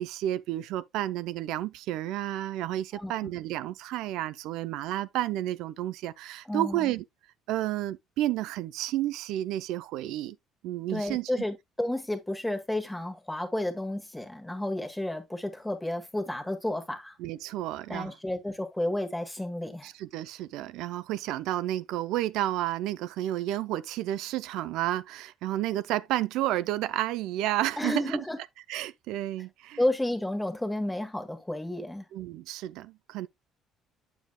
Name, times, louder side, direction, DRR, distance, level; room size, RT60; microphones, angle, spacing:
voice 1, 0.0-7.0 7.5-10.4 10.6-11.4 17.2-18.1 19.8-28.2 28.7-29.8 32.1-33.3, right 14 dB, 80° right, 0.5 m, -31 dB
voice 2, 6.5-6.9 10.9-17.1 17.9-19.9 27.8-28.4 29.8-32.1, left 1 dB, 5° left, 1.3 m, -31 dB
9.1 x 7.0 x 2.2 m
cardioid pair, 150°, 0 cm